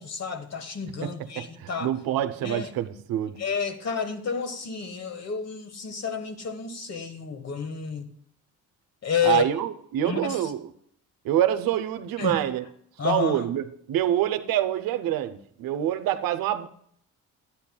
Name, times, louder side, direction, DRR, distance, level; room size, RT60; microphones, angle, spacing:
voice 1, 0.0-1.9 2.4-2.7 3.4-8.1 9.0-9.5 10.0-10.5 12.2-12.4 13.0-13.4, left 6 dB, 45° left, 1.4 m, -30 dB
voice 2, 1.4-3.4 9.2-10.6 11.2-12.6 13.0-16.7, right 11 dB, 70° right, 0.7 m, -26 dB
11.5 x 9.0 x 2.3 m
supercardioid pair, 55°, 36 cm